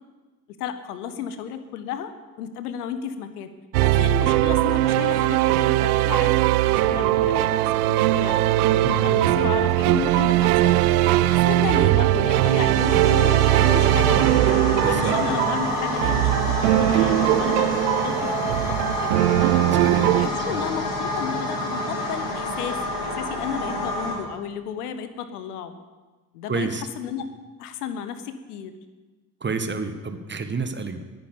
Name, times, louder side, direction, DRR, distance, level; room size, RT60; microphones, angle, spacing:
voice 1, 0.6-2.1 2.4-3.5 3.8-6.4 6.7-8.4 9.0-10.9 11.3-14.3 14.8-19.2 20.1-25.7 26.3-27.3 27.6-28.7, left 8 dB, 70° left, 11 dB, 1.2 m, -33 dB
sound 1, 3.7-20.3, right 15 dB, 65° right, 0.7 m, -20 dB
voice 2, 8.8-9.2 14.8-15.1 19.7-20.1 20.5-20.6 26.5-26.8 29.4-31.0, right 4 dB, 20° right, 8 dB, 1.7 m, -29 dB
sound 2, 12.3-24.1, left 1 dB, 50° left, 4.9 m, -28 dB
20.5 x 9.6 x 7.0 m, 1.3 s
figure-of-eight pair, 50°, 48 cm